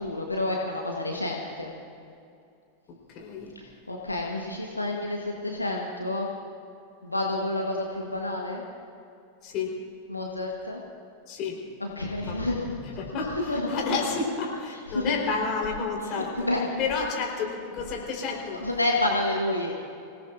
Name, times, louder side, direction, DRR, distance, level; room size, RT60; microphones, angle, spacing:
voice 1, 0.0-1.7 3.5-6.3 7.0-8.6 10.1-10.8 11.8-12.7 13.3-13.7 14.7-15.1 16.1-16.8 18.6-19.7, left 2 dB, 85° left, 0 dB, 1.3 m, -29 dB
voice 2, 3.1-3.5 9.4-9.7 11.3-11.6 12.2-16.5 16.8-18.7, left 4 dB, 40° left, 0 dB, 4.2 m, -31 dB
26.0 x 17.5 x 2.6 m, 2.5 s
figure-of-eight pair, 90°, 0 cm